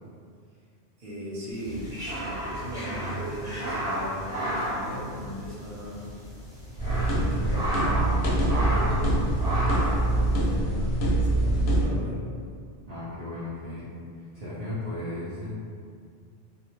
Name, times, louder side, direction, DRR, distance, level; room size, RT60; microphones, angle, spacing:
voice 1, 1.0-1.9 2.2-6.0 6.8-12.2, equal, 50° right, -7 dB, 0.7 m, -38 dB
sound 1, 1.6-8.1, right 1 dB, 90° left, 1.0 m, -43 dB
sound 2, 1.6-5.7 5.9-6.1 6.6-8.1 8.4-9.0 9.4-10.0, right 1 dB, 5° right, 0.6 m, -32 dB
sound 3, 6.8-11.9, right 1 dB, 65° left, 0.7 m, -24 dB
voice 2, 12.9-15.5, left 1 dB, 80° right, -11 dB, 0.3 m, -36 dB
2.2 x 2.1 x 2.8 m, 2.2 s
omnidirectional pair, 1.2 m